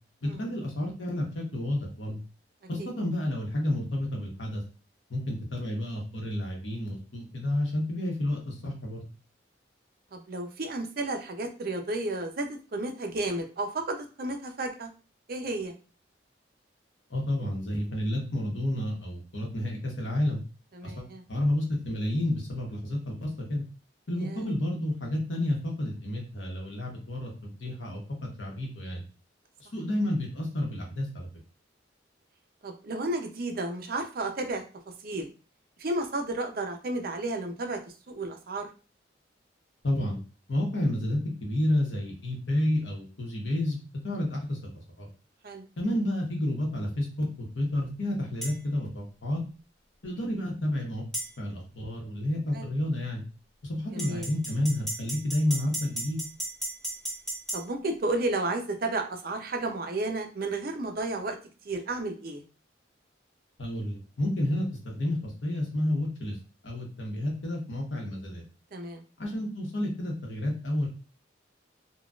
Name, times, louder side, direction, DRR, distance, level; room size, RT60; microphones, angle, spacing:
voice 1, 0.2-2.2 2.7-4.6 5.1-9.0 17.1-20.4 20.8-23.6 24.1-28.0 28.4-29.0 29.7-31.3 39.8-40.2 40.5-43.8 44.0-45.1 45.8-49.4 50.0-51.0 51.4-53.2 53.6-56.2 63.6-66.3 66.6-68.4 69.2-70.9, left 1 dB, 80° left, 0 dB, 1.0 m, -30 dB
voice 2, 10.1-14.9 15.3-15.7 20.7-21.2 24.2-24.4 32.6-34.6 35.0-35.3 35.8-37.8 38.1-38.7 45.4-45.7 52.5-52.7 53.9-54.3 57.5-61.4 61.7-62.4 68.7-69.0, right 2 dB, 50° right, 4 dB, 0.5 m, -32 dB
sound 1, 48.4-48.6 51.1-51.3 54.0-57.6, right 1 dB, ahead, 0.8 m, -34 dB
3.9 x 2.3 x 2.3 m, 0.35 s
head